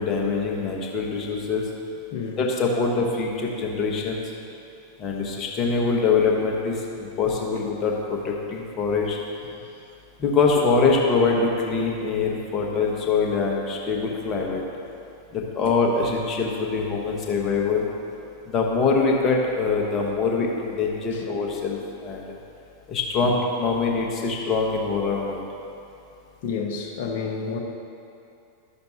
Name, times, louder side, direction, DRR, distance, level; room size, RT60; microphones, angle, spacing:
voice 1, 0.0-1.7 2.4-4.2 5.0-9.2 10.2-14.6 15.3-17.9 18.5-22.2 22.9-25.4, left 4 dB, 30° left, -1 dB, 1.2 m, -24 dB
voice 2, 26.4-27.6, left 5 dB, 50° left, 0 dB, 1.1 m, -30 dB
12.0 x 6.7 x 2.8 m, 2.8 s
figure-of-eight pair, 90°, 0 cm